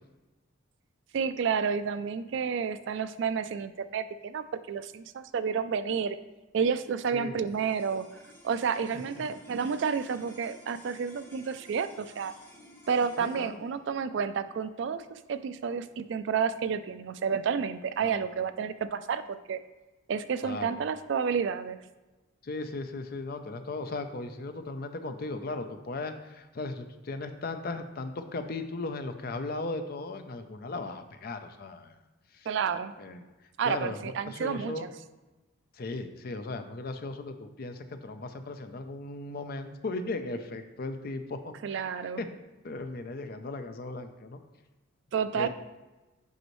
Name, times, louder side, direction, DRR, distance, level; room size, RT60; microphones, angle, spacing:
voice 1, 1.1-6.2 6.5-8.1 8.4-12.3 12.9-19.6 20.1-21.8 32.5-32.9 33.6-34.9 41.6-42.2 45.1-45.5, right 6 dB, 60° right, 12 dB, 0.3 m, -30 dB
sound 1, 7.4-17.9, left 1 dB, 10° left, 1.0 m, -55 dB
voice 2, 13.2-13.6 18.0-18.2 20.4-20.8 22.4-32.0 32.3-32.5 33.0-33.2 33.6-34.9 35.7-41.9 42.2-42.3 42.6-44.4 45.3-45.5, left 2 dB, 45° left, 8 dB, 0.5 m, -37 dB
7.9 x 5.3 x 3.1 m, 1.1 s
head